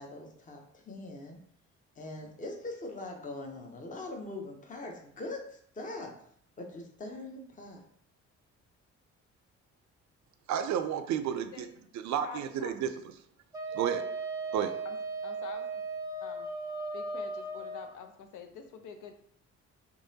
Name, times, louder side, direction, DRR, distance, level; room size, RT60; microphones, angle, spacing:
voice 1, 0.0-1.4 2.0-6.1 6.6-7.8, left 2 dB, 25° left, 1 dB, 0.7 m, -42 dB
voice 2, 10.5-11.7 11.9-12.9 13.7-14.1 14.5-14.8, right 9 dB, 70° right, 9 dB, 0.5 m, -31 dB
voice 3, 12.2-12.7 14.8-15.0 15.2-15.7 16.2-16.5 16.9-19.1, left 7 dB, 85° left, 5 dB, 0.6 m, -46 dB
Wind instrument woodwind instrument, 13.5-17.9, right 3 dB, 10° right, 0.5 m, -37 dB
3.8 x 2.9 x 2.7 m, 0.65 s
cardioid pair, 90°, 30 cm